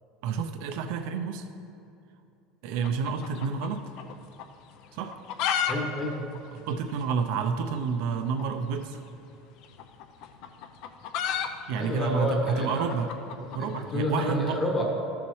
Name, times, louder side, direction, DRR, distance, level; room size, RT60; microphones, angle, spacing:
voice 1, 0.2-1.5 2.6-3.9 4.9-5.2 6.5-9.0 11.7-13.1 13.5-14.6, right 6 dB, 65° right, 6 dB, 0.5 m, -29 dB
sound 1, 2.8-4.1 4.4-4.5 5.0-5.8 6.0-6.1 6.3-6.4 7.0-7.1 8.3-8.5 9.6-13.9, left 8 dB, 55° left, 0.5 m, -31 dB
voice 2, 5.7-6.3 11.7-12.9 13.5-14.8, left 1 dB, 25° left, -1 dB, 1.3 m, -29 dB
13.0 x 7.0 x 3.1 m, 2.6 s
cardioid pair, 155°, 0 cm